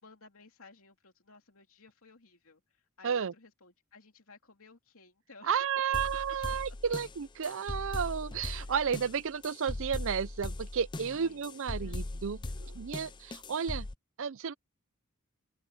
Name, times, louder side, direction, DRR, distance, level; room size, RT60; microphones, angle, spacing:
voice 1, 0.0-5.5 6.7-6.8 8.6-8.7 11.1-11.4 11.8-12.6, left 3 dB, 65° left, 3.2 m, -57 dB
voice 2, 5.4-12.4 12.8-13.9 14.2-14.5, right 7 dB, 60° right, 0.5 m, -32 dB
sound 1, 5.9-13.9, left 2 dB, 20° left, 0.5 m, -39 dB
open air
head